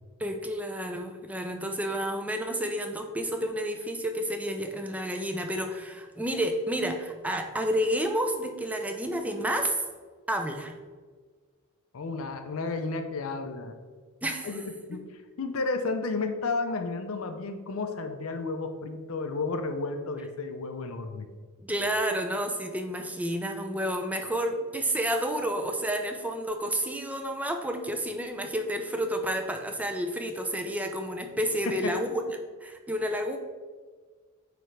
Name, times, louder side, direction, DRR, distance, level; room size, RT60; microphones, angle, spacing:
voice 1, 0.2-9.8 10.3-10.7 14.2-14.5 21.7-32.2 32.6-33.4, equal, 5° right, 5 dB, 0.4 m, -30 dB
voice 2, 11.9-13.8 14.4-21.3 31.7-32.0, left 3 dB, 70° left, 7 dB, 0.5 m, -32 dB
8.8 x 3.4 x 3.2 m, 1.5 s
head